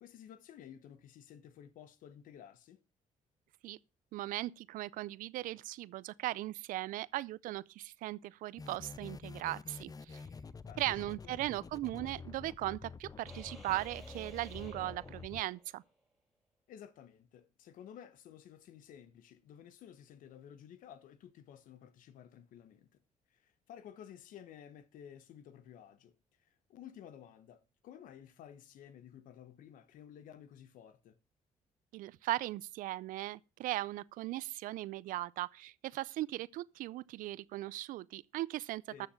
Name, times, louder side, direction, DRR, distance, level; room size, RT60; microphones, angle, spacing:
voice 1, 0.0-2.8 10.7-11.1 16.7-23.0 23.3-31.2 38.9-39.1, left 9 dB, 80° left, 1.2 m, -54 dB
voice 2, 4.1-10.2 10.8-15.8 31.9-39.1, right 16 dB, 85° right, 0.5 m, -38 dB
sound 1, 8.6-15.4, left 4 dB, 30° left, 0.6 m, -48 dB
sound 2, 13.3-15.9, right 1 dB, ahead, 3.4 m, -54 dB
13.0 x 7.0 x 5.7 m
cardioid pair, 80°, 14 cm